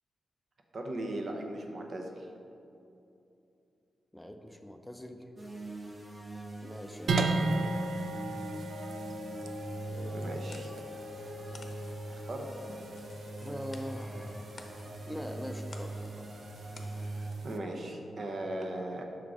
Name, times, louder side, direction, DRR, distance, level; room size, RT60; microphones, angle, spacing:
voice 1, 0.7-2.3 10.1-10.7 12.1-12.5 17.4-19.0, right 1 dB, 60° right, 2 dB, 0.7 m, -38 dB
voice 2, 4.1-5.2 6.6-7.4 9.9-10.3 13.4-14.5 15.1-16.3, equal, 5° left, 5 dB, 0.4 m, -43 dB
sound 1, 5.4-17.3, right 2 dB, 30° right, 1.1 m, -42 dB
sound 2, 7.1-17.6, right 2 dB, 80° right, 0.4 m, -37 dB
sound 3, 9.9-17.5, left 3 dB, 50° left, 0.7 m, -56 dB
6.1 x 3.7 x 4.8 m, 2.7 s
cardioid pair, 70°, 0 cm